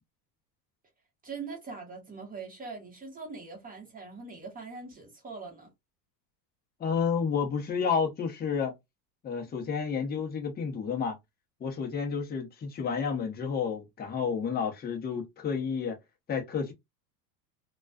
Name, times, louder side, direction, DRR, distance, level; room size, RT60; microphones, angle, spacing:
voice 1, 1.2-5.7, right 4 dB, 15° right, 1.0 m, -42 dB
voice 2, 6.8-8.7 9.2-11.2 11.6-16.0 16.3-16.7, left 6 dB, 20° left, 0.8 m, -30 dB
2.4 x 2.2 x 2.2 m
hypercardioid pair, 105°, 49 cm